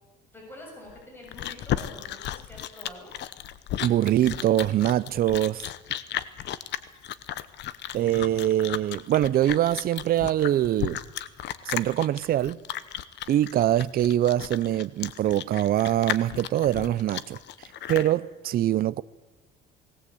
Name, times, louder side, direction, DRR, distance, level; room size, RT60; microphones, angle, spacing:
voice 1, 0.3-3.1, left 1 dB, 10° left, 6.8 m, -46 dB
Chewing mastication, 0.9-18.1, left 12 dB, 60° left, 1.0 m, -34 dB
voice 2, 3.8-5.7 7.9-11.0 11.7-12.6 13.3-17.4 17.9-19.0, right 12 dB, 45° right, 0.6 m, -23 dB
19.0 x 18.5 x 8.4 m
cardioid pair, 140°, 20 cm